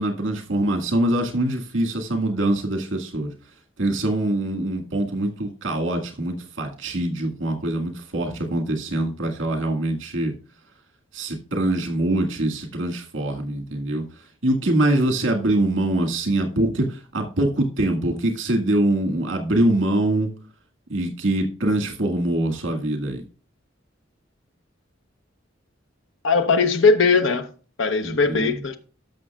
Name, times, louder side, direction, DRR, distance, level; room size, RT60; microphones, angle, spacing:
voice 1, 0.0-3.3 3.8-10.3 11.1-14.0 14.4-20.3 20.9-23.2 28.0-28.5, right 1 dB, 85° right, 1.9 m, -24 dB
voice 2, 26.2-27.5 27.8-28.8, left 4 dB, 75° left, 0.9 m, -19 dB
13.0 x 6.2 x 2.4 m
head